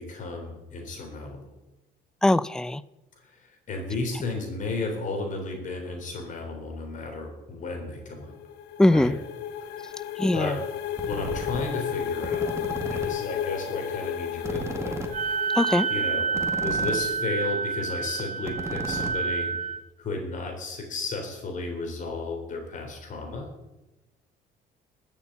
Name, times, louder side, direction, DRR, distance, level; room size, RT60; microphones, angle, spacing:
voice 1, 0.0-1.5 3.2-8.3 8.9-9.1 9.7-10.6 11.1-12.6 12.9-15.4 15.9-16.3 16.6-23.5, left 3 dB, 50° left, 3 dB, 3.5 m, -34 dB
voice 2, 2.2-2.8 8.8-9.2 10.2-10.5 15.5-15.9, left 1 dB, 5° left, 18 dB, 0.4 m, -21 dB
sound 1, 8.1-16.8, left 9 dB, 90° left, 1.1 m, -33 dB
sound 2, 11.0-11.6 12.1-13.1 13.4-13.5 13.7-13.8 14.0-14.1 14.4-17.1 17.4-17.6 17.9-18.0 18.2-19.6, right 2 dB, 15° right, 1.9 m, -35 dB
Wind instrument woodwind instrument, 15.1-19.8, right 5 dB, 50° right, 1.1 m, -28 dB
13.5 x 7.3 x 8.0 m, 1.0 s
cardioid pair, 110°, 17 cm